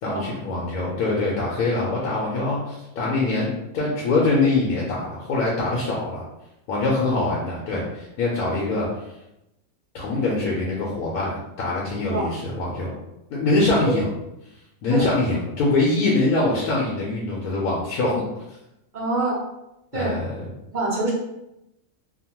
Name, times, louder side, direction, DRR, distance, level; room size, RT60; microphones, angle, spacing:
voice 1, 0.0-6.3 6.7-8.9 9.9-12.9 13.3-14.1 14.8-18.4 19.9-20.4, left 2 dB, 90° left, -5 dB, 1.1 m, -23 dB
voice 2, 18.9-19.4 19.9-20.2 20.7-21.1, right 2 dB, 70° right, -5 dB, 0.4 m, -25 dB
2.9 x 2.1 x 2.8 m, 0.89 s
omnidirectional pair, 1.5 m